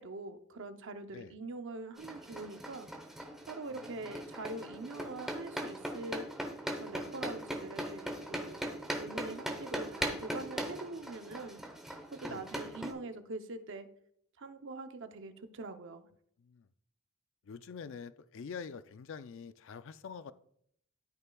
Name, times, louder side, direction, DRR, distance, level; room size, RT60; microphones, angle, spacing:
voice 1, 0.0-2.9 3.5-6.3 6.8-8.6 9.0-11.6 12.1-13.9 14.4-16.1, right 3 dB, 60° right, 9 dB, 0.7 m, -43 dB
sound 1, 2.0-12.9, right 1 dB, ahead, 0.9 m, -40 dB
voice 2, 3.7-4.2 12.2-12.5 16.4-16.7 17.4-20.3, left 6 dB, 60° left, 13 dB, 0.4 m, -46 dB
13.0 x 5.6 x 2.3 m, 0.69 s
head